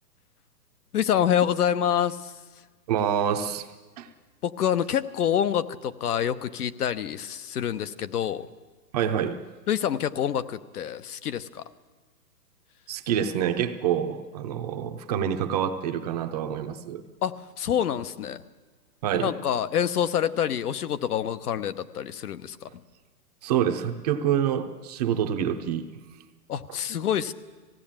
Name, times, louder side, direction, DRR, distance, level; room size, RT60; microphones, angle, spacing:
voice 1, 0.9-2.4 4.4-8.5 9.7-11.6 17.2-18.4 19.2-22.8 26.5-27.3, left 9 dB, 65° left, 12 dB, 1.0 m, -27 dB
voice 2, 2.9-3.7 4.0-4.1 8.9-9.4 12.9-17.0 19.0-19.3 23.4-25.9, right 9 dB, 25° right, 7 dB, 0.7 m, -27 dB
19.0 x 16.5 x 8.8 m, 1.3 s
hypercardioid pair, 150°, 49 cm